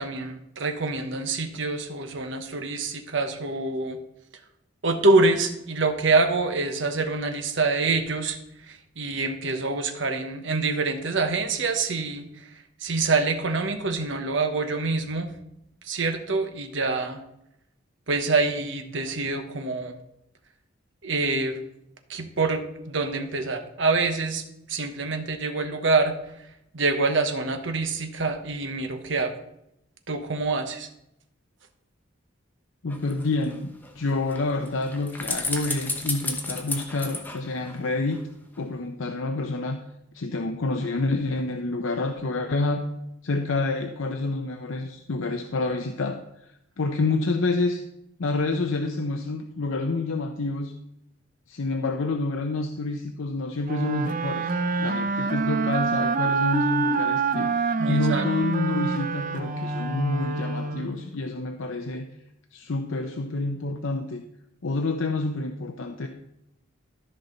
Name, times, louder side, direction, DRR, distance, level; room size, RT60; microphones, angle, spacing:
voice 1, 0.0-4.0 4.8-8.4 8.7-12.2 12.8-15.3 15.9-17.2 18.1-19.9 21.0-21.6 22.1-24.4 24.7-26.1 26.7-29.3 30.1-30.9 57.8-58.2, right 3 dB, 65° right, 7 dB, 1.1 m, -26 dB
voice 2, 32.8-38.2 38.6-39.8 40.1-42.8 43.2-46.2 46.8-47.8 48.2-50.7 51.5-62.0 62.5-64.2 64.6-66.1, left 2 dB, 80° left, 5 dB, 0.7 m, -28 dB
sound 1, 32.9-38.2 38.5-38.6, left 2 dB, 10° left, 1.0 m, -34 dB
sound 2, 53.6-61.1, right 4 dB, 45° right, 0.6 m, -26 dB
13.5 x 5.7 x 3.9 m, 0.81 s
head